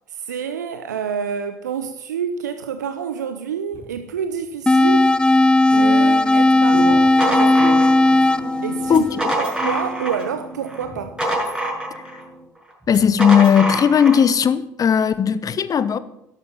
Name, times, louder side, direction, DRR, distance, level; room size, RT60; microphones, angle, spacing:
voice 1, 0.1-5.1 5.7-7.6 8.6-9.0 9.4-11.2, right 7 dB, 85° right, 0.7 m, -28 dB
sound 1, 3.7-4.2 5.7-12.5, right 1 dB, 60° right, 6.0 m, -34 dB
sound 2, 4.7-9.7, left 2 dB, 10° left, 0.5 m, -16 dB
sound 3, 6.9-8.3 8.9-10.3 10.7-12.2 12.9-14.2, right 1 dB, 10° right, 6.9 m, -25 dB
voice 2, 8.9-9.3 12.9-16.0, left 7 dB, 40° left, 1.1 m, -16 dB
12.5 x 12.0 x 5.8 m
figure-of-eight pair, 55°, 9 cm